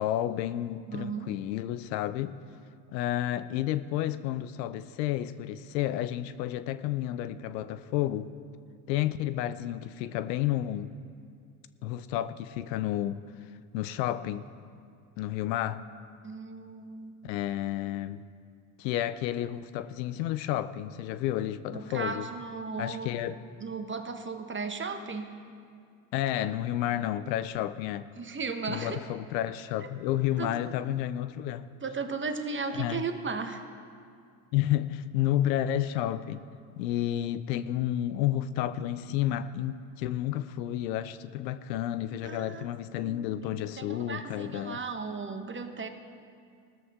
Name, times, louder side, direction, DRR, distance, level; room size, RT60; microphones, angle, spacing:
voice 1, 0.0-2.4 2.9-8.3 8.9-10.9 11.8-13.2 13.7-14.5 15.2-15.8 17.2-18.2 18.8-22.3 22.8-23.4 26.1-28.1 28.7-31.7 32.8-33.1 34.5-36.4 36.8-44.8, left 12 dB, 80° left, 14 dB, 0.7 m, -31 dB
voice 2, 0.9-1.3 16.2-17.2 21.7-23.1 23.6-25.3 28.2-29.0 30.4-30.5 31.8-33.6 42.2-42.7 43.0-43.5 43.8-45.9, right 4 dB, 25° right, 7 dB, 1.3 m, -36 dB
17.0 x 13.5 x 3.7 m, 2.3 s
hypercardioid pair, 75°, 50 cm